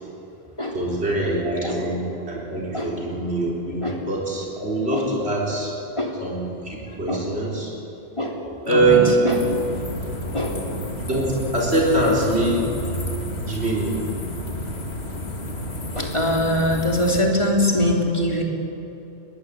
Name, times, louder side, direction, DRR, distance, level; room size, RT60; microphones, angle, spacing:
voice 1, 0.7-2.0 2.3-5.7 6.2-7.7 8.6-9.4 11.1-12.7 13.5-14.0, right 2 dB, 90° right, -3 dB, 4.3 m, -23 dB
voice 2, 8.7-9.4 10.3-10.6 15.9-18.4, left 1 dB, 30° left, 0 dB, 3.4 m, -22 dB
sound 1, 9.3-17.2, left 1 dB, 90° left, 2.4 m, -31 dB
22.5 x 20.0 x 8.4 m, 3.0 s
omnidirectional pair, 1.1 m